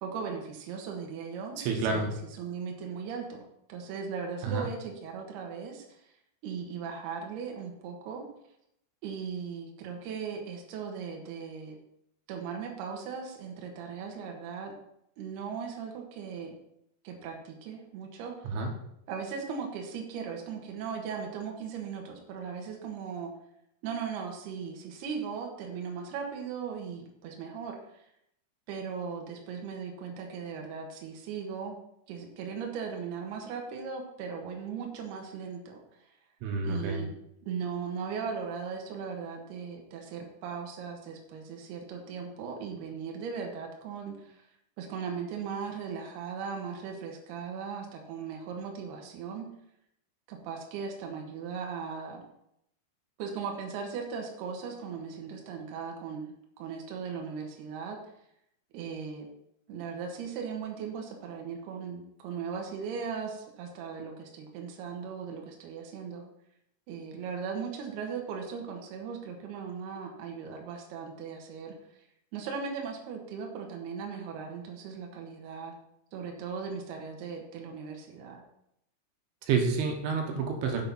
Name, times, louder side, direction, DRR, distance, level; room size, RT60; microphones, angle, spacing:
voice 1, 0.0-1.6 1.9-2.1 2.4-6.0 6.4-8.3 9.0-11.8 12.3-14.7 15.2-16.5 17.0-18.5 19.1-23.3 23.8-27.8 28.7-31.8 32.1-35.8 36.6-37.1 37.4-44.4 44.8-49.5 50.3-52.2 53.2-58.0 58.7-59.3 59.7-66.2 66.9-71.7 72.3-75.7 76.1-78.4, right 6 dB, 65° right, 1 dB, 3.0 m, -38 dB
voice 2, 1.6-2.1 4.4-4.7 18.5-18.7 36.4-37.1 79.5-80.8, right 4 dB, 80° right, 2 dB, 3.7 m, -29 dB
7.8 x 6.7 x 5.6 m, 0.76 s
omnidirectional pair, 5.5 m